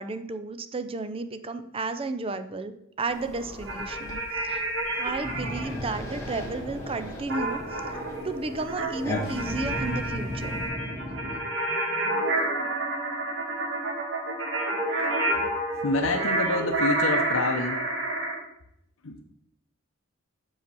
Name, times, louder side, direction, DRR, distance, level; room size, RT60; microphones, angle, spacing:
voice 1, 0.0-2.7 3.0-8.0 8.2-10.6, right 3 dB, 25° right, 10 dB, 0.5 m, -33 dB
sound 1, 3.1-10.7, left 1 dB, 15° left, 1.7 m, -40 dB
sound 2, 3.6-5.7 7.3-18.4, right 2 dB, 60° right, 2.1 m, -29 dB
sound 3, 5.2-11.4, equal, 5° right, 2.3 m, -37 dB
voice 2, 15.8-17.8 19.0-19.2, left 3 dB, 80° left, 3 dB, 0.7 m, -27 dB
5.7 x 5.3 x 6.8 m, 0.77 s
head